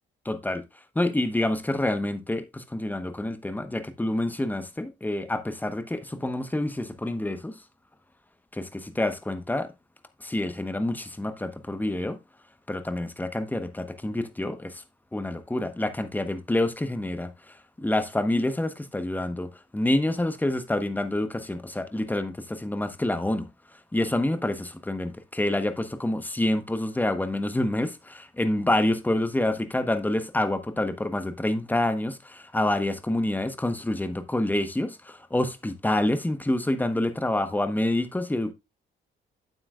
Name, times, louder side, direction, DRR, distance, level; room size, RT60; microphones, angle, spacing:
voice 1, 0.2-0.6 0.9-7.6 8.5-9.7 10.2-12.2 12.7-14.8 15.1-23.5 23.9-38.5, left 1 dB, 10° left, 1.0 m, -27 dB
8.8 x 7.9 x 2.4 m
cardioid pair, 90°, 20 cm